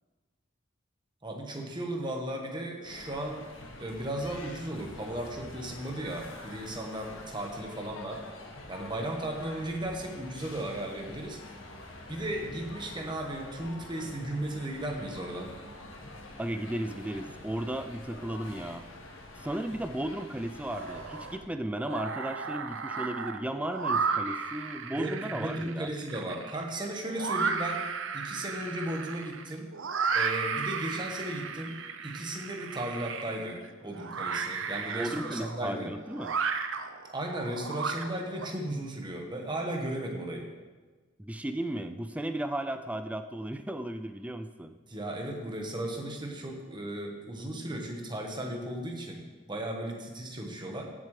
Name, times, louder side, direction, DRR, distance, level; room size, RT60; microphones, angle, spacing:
voice 1, 1.2-8.2 8.7-11.4 12.1-15.5 24.9-27.9 28.1-29.7 30.1-31.8 32.0-35.9 37.1-40.5 44.9-49.2 49.5-50.8, right 1 dB, 25° right, 1 dB, 1.3 m, -35 dB
sound 1, 2.8-21.4, left 2 dB, 85° left, 1.5 m, -46 dB
voice 2, 16.4-18.8 19.4-25.9 35.0-36.4 41.2-44.8, right 1 dB, 5° right, 8 dB, 0.4 m, -35 dB
sound 2, 20.7-21.4 21.7-38.5, right 5 dB, 70° right, 0.7 m, -34 dB
15.5 x 7.5 x 3.3 m, 1.3 s
head